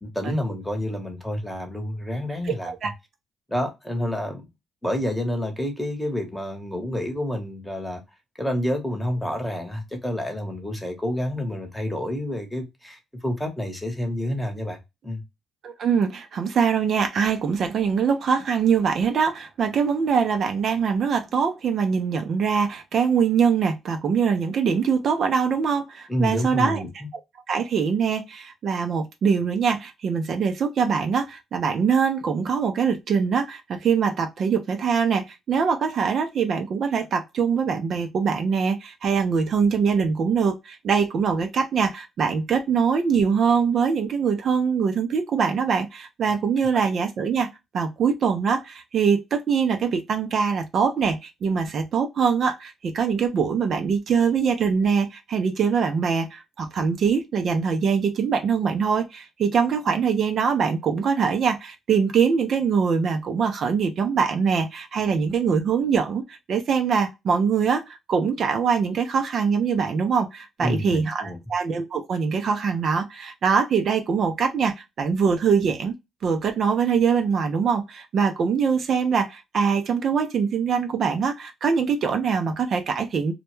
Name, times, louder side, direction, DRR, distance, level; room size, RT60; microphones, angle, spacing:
voice 1, 0.0-2.7 3.5-4.5 4.8-8.0 8.4-14.8 15.0-15.2 26.1-27.1 70.6-71.4, left 1 dB, 5° left, 0.9 m, -28 dB
voice 2, 2.5-2.9 15.6-26.8 27.5-47.5 47.7-75.9 76.2-83.3, right 6 dB, 60° right, 0.4 m, -23 dB
2.1 x 2.1 x 3.0 m
cardioid pair, 90°, 0 cm